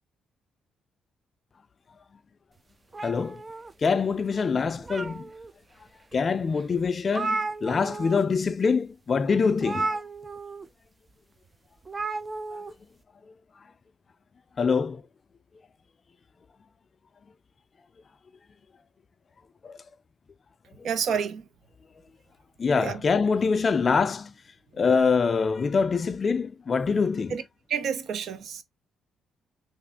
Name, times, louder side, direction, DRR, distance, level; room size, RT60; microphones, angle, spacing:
sound 1, 2.9-4.1 4.6-5.5 6.1-6.2 6.6-6.7 6.8-8.2 8.5-8.7 9.6-10.6 11.8-12.7, right 3 dB, 25° right, 0.4 m, -33 dB
voice 1, 3.0-3.4 3.8-5.3 6.1-10.0 12.5-12.6 14.6-15.0 19.6-19.8 20.8-20.9 22.6-24.3 24.7-27.4, left 5 dB, 40° left, 0.4 m, -24 dB
voice 2, 20.8-21.4 22.8-23.0 27.3-27.4 27.7-28.6, right 7 dB, 70° right, 0.7 m, -29 dB
3.3 x 2.4 x 3.5 m
cardioid pair, 90°, 0 cm